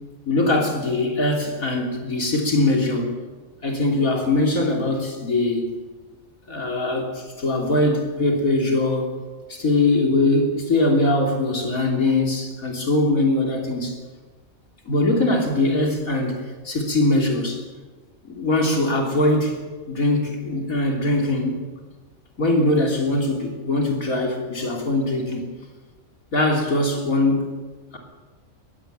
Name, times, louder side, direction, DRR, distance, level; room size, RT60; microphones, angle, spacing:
voice 1, 0.3-3.1 3.6-5.7 6.5-9.1 9.5-14.0 14.9-16.4 16.6-17.6 18.2-19.6 19.9-21.6 22.4-25.5 26.3-27.5, left 2 dB, 75° left, 1 dB, 3.7 m, -21 dB
21.0 x 16.0 x 9.2 m, 1.3 s
omnidirectional pair, 1.5 m